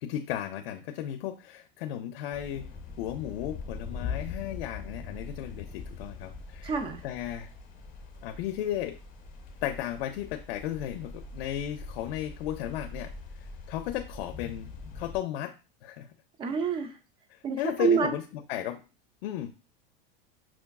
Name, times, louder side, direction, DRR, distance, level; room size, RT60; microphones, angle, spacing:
voice 1, 0.0-2.7 3.0-6.7 7.0-7.5 8.2-9.0 9.6-13.1 13.4-15.5 15.8-16.1 17.3-18.8 19.2-19.5, left 12 dB, 75° left, 7 dB, 0.5 m, -35 dB
sound 1, 2.3-15.2, left 5 dB, 25° left, 0.8 m, -42 dB
voice 2, 6.6-7.0 16.4-16.9 17.4-18.1, right 6 dB, 20° right, 7 dB, 0.3 m, -27 dB
5.9 x 2.3 x 2.3 m, 0.33 s
supercardioid pair, 150°, 29 cm